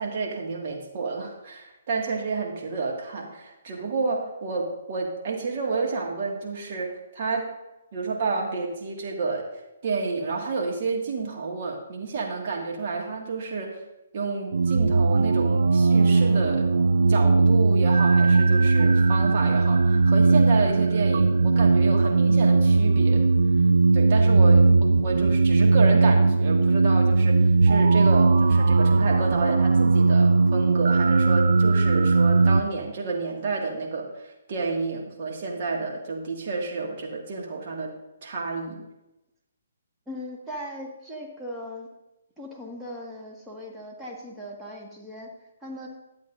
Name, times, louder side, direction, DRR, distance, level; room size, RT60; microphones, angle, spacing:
voice 1, 0.0-7.5 7.9-9.5 9.8-13.7 14.1-16.7 17.1-23.3 23.9-37.9 38.2-38.9, right 4 dB, 50° right, -1 dB, 1.9 m, -30 dB
sound 1, 14.5-32.6, right 3 dB, 70° right, 0.4 m, -19 dB
voice 2, 40.1-41.9 42.4-45.3 45.6-45.9, equal, 5° right, -3 dB, 1.6 m, -38 dB
12.0 x 8.0 x 2.6 m, 0.93 s
figure-of-eight pair, 135°, 0 cm